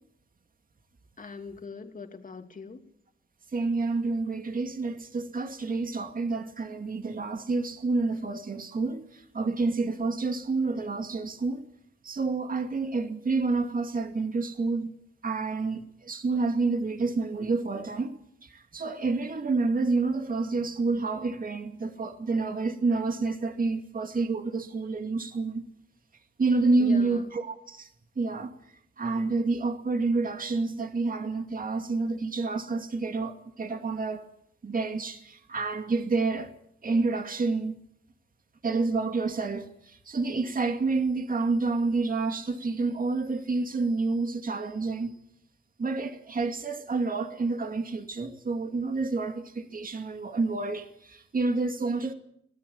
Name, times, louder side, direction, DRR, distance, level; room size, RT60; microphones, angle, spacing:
voice 1, 1.2-2.9 26.8-27.2, left 4 dB, 40° left, 2.9 m, -41 dB
voice 2, 3.5-11.7 12.0-14.9 15.2-25.6 26.4-27.9 28.2-28.5 29.0-34.3 34.6-36.5 36.8-37.8 38.6-45.1 45.8-52.1, right 3 dB, 45° right, 2.4 m, -29 dB
25.5 x 17.5 x 8.7 m
cardioid pair, 95°, 21 cm